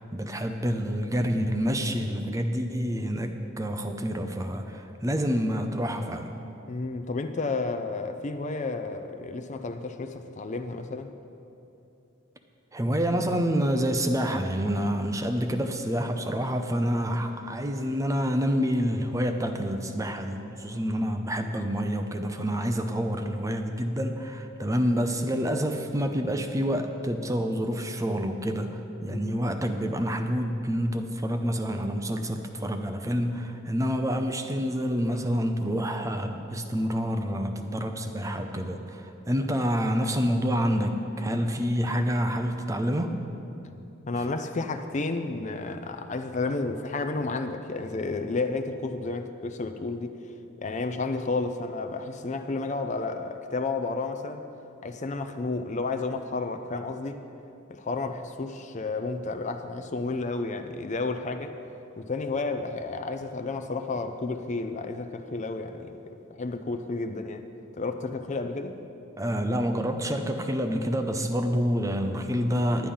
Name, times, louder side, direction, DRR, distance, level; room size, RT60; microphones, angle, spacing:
voice 1, 0.1-6.3 12.7-43.1 69.2-72.9, equal, 15° right, 5 dB, 0.5 m, -28 dB
voice 2, 6.7-11.1 29.1-29.5 44.1-50.1 50.6-54.4 54.8-57.2 57.7-61.5 62.0-66.0 66.3-67.4 67.7-68.8, left 3 dB, 35° left, 7 dB, 0.5 m, -31 dB
10.0 x 10.0 x 5.5 m, 2.8 s
head